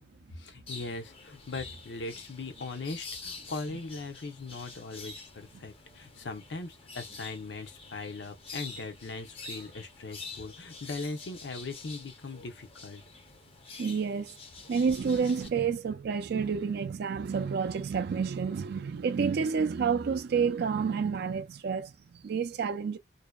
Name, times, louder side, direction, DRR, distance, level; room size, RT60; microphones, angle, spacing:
voice 1, 0.3-13.0, left 3 dB, 70° left, 0.7 m, -39 dB
sound 1, 0.7-15.5, left 4 dB, 30° left, 0.5 m, -47 dB
voice 2, 13.8-14.3 14.7-23.0, right 6 dB, 60° right, 0.4 m, -29 dB
2.7 x 2.1 x 2.2 m
head